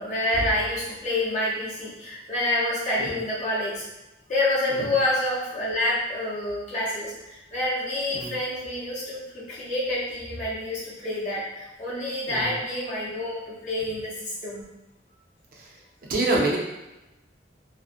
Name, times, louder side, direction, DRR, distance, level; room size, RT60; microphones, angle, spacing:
voice 1, 0.0-3.8 4.3-14.6, left 1 dB, 40° left, -7 dB, 0.5 m, -28 dB
voice 2, 4.7-5.0 8.1-8.4 12.3-12.6 15.5-15.8 16.1-16.6, right 2 dB, 50° right, -2 dB, 0.5 m, -27 dB
2.5 x 2.0 x 2.4 m, 0.98 s
head